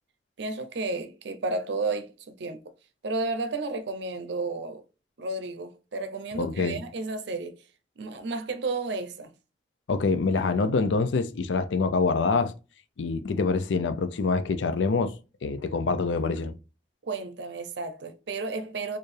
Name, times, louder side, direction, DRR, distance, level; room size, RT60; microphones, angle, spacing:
voice 1, 0.4-2.6 3.0-4.8 5.2-7.6 8.0-9.3 17.0-19.0, right 3 dB, 70° right, 0.5 m, -32 dB
voice 2, 6.4-6.8 9.9-12.5 13.0-15.1 15.4-16.5, left 4 dB, 85° left, 0.5 m, -25 dB
4.4 x 2.5 x 3.2 m
head